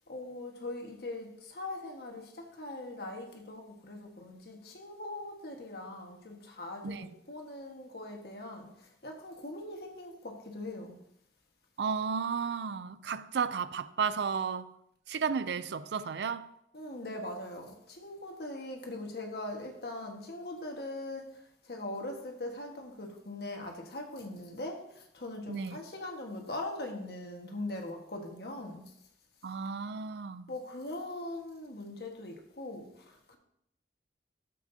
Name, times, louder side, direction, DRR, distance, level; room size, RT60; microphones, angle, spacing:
voice 1, 0.1-11.0 16.7-28.9 30.5-33.4, left 2 dB, 60° left, 1.5 m, -41 dB
voice 2, 11.8-14.7 15.1-16.5 25.5-25.8 29.4-30.5, right 6 dB, 75° right, 0.4 m, -33 dB
12.5 x 7.6 x 2.8 m
head